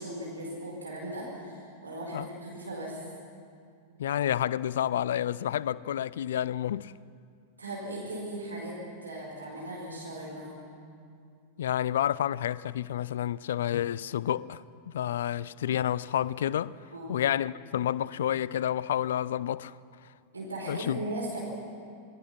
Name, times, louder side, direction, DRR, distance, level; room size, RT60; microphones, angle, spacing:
voice 1, 0.0-3.0 7.6-8.7 9.0-10.5 16.9-17.2 20.3-21.4, right 1 dB, 80° right, 4.5 m, -38 dB
voice 2, 4.0-6.9 11.6-16.8 17.1-19.7 20.7-21.1, left 10 dB, 60° left, 0.5 m, -29 dB
27.0 x 20.0 x 5.9 m
figure-of-eight pair, 90°, 0 cm